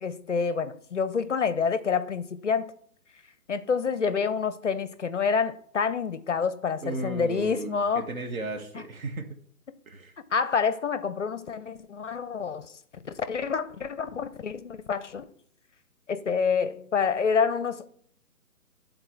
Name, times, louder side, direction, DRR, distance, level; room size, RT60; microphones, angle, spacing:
voice 1, 0.0-2.7 3.5-8.1 10.3-12.7 13.0-15.3 16.1-17.9, left 6 dB, 55° left, 0.5 m, -27 dB
voice 2, 6.8-9.4 9.9-10.1, right 2 dB, 60° right, 1.4 m, -35 dB
9.0 x 3.9 x 4.5 m
hypercardioid pair, 160°, 46 cm